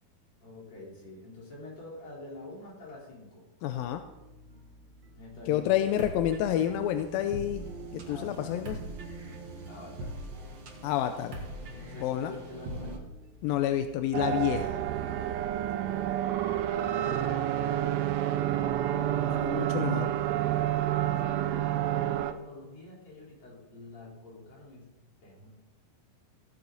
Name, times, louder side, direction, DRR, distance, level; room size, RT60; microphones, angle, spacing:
voice 1, 0.4-3.5 5.2-6.1 8.0-8.6 9.6-10.2 11.8-13.1 15.5-20.7 21.1-24.9 25.2-25.5, left 2 dB, 45° left, -5 dB, 5.1 m, -47 dB
voice 2, 3.6-4.0 5.5-7.6 7.9-8.8 10.8-11.4 12.0-12.3 13.4-14.8 19.4-20.1, left 11 dB, 80° left, 8 dB, 2.2 m, -29 dB
sound 1, 3.8-16.4, left 1 dB, 15° right, 3.4 m, -55 dB
sound 2, 5.7-13.0, right 1 dB, 60° right, 1.2 m, -41 dB
sound 3, 14.1-22.3, right 12 dB, 80° right, 2.6 m, -29 dB
15.0 x 8.6 x 4.0 m, 1.0 s
omnidirectional pair, 4.5 m